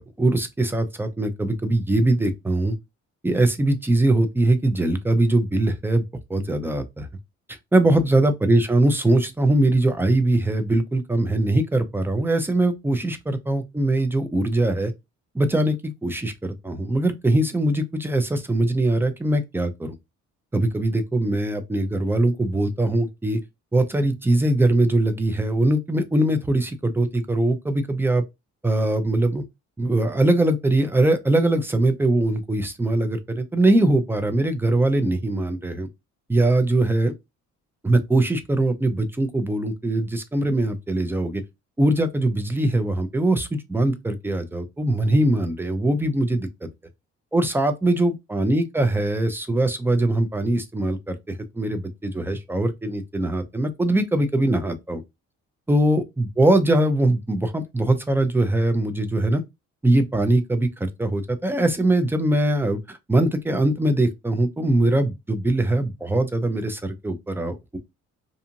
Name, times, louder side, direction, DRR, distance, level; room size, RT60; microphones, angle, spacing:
voice 1, 0.2-2.8 3.2-6.0 6.3-7.1 7.7-14.9 15.3-19.9 20.5-23.4 23.7-28.2 28.6-29.4 29.8-35.9 36.3-37.1 37.8-41.4 41.8-46.7 47.3-55.0 55.7-59.4 59.8-67.8, right 1 dB, 5° right, 0.5 m, -22 dB
2.6 x 2.4 x 2.8 m
cardioid pair, 90°, 30 cm